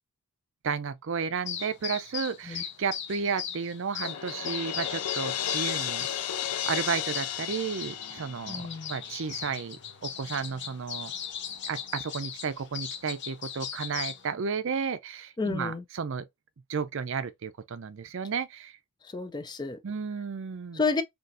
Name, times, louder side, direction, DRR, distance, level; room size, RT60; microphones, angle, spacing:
voice 1, 0.6-11.1 11.7-16.3 16.7-18.8 19.8-20.8, right 6 dB, 55° right, 0.5 m, -33 dB
sound 1, 1.5-14.3, left 8 dB, 50° left, 0.8 m, -39 dB
Crash cymbal, 4.0-9.0, left 10 dB, 85° left, 0.5 m, -33 dB
voice 2, 8.5-9.0 15.4-15.8 19.0-19.8 20.7-21.0, left 4 dB, 20° left, 0.3 m, -30 dB
4.1 x 2.8 x 2.5 m
head